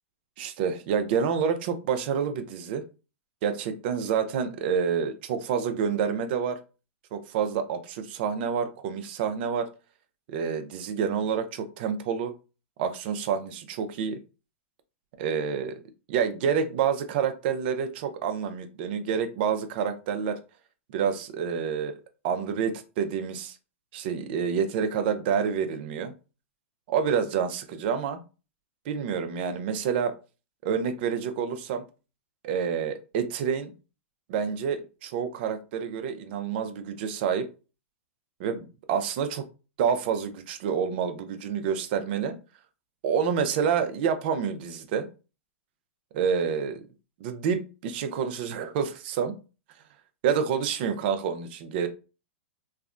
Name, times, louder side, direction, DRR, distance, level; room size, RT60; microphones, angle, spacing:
voice 1, 0.4-2.8 3.4-6.6 7.1-9.7 10.3-12.3 12.8-14.2 15.2-15.8 16.1-20.4 20.9-21.9 22.2-23.6 23.9-26.1 26.9-28.2 28.9-30.2 30.6-31.8 32.4-33.7 34.3-37.5 38.4-39.5 39.8-42.4 43.0-45.1 46.1-46.9 47.2-49.3 50.2-51.9, right 7 dB, 50° right, 0.5 m, -28 dB
3.3 x 2.1 x 2.4 m
hypercardioid pair, 130°, 7 cm